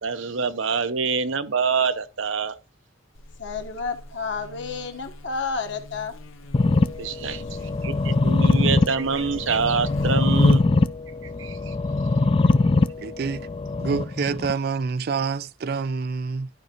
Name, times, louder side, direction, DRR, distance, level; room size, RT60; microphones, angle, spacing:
voice 1, 0.0-2.6 7.0-7.4 7.8-10.6 11.4-11.7, right 5 dB, 75° right, 0.7 m, -25 dB
Buzz, 3.1-10.9, left 2 dB, 80° left, 0.9 m, -34 dB
voice 2, 3.4-6.2 7.2-7.3, left 4 dB, 60° left, 1.2 m, -31 dB
sound 1, 6.5-14.5, left 3 dB, 25° left, 0.4 m, -22 dB
voice 3, 13.0-13.5 13.8-16.5, right 5 dB, 50° right, 0.3 m, -27 dB
12.0 x 5.3 x 2.9 m
head